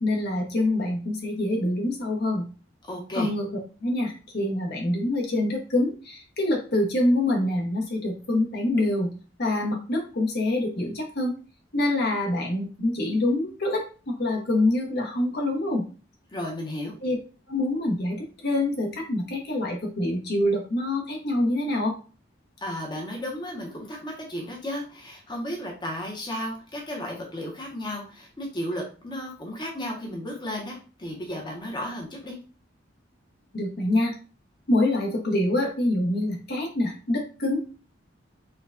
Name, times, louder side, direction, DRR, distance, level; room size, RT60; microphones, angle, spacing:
voice 1, 0.0-2.5 3.1-3.5 3.8-9.1 9.4-11.3 11.7-15.8 17.0-17.2 17.5-21.9 33.5-34.1 34.7-37.6, left 1 dB, 60° left, 1 dB, 0.8 m, -25 dB
voice 2, 2.8-3.3 16.3-16.9 22.6-32.4, left 1 dB, 25° left, -1 dB, 0.7 m, -34 dB
4.4 x 2.2 x 2.5 m, 0.36 s
head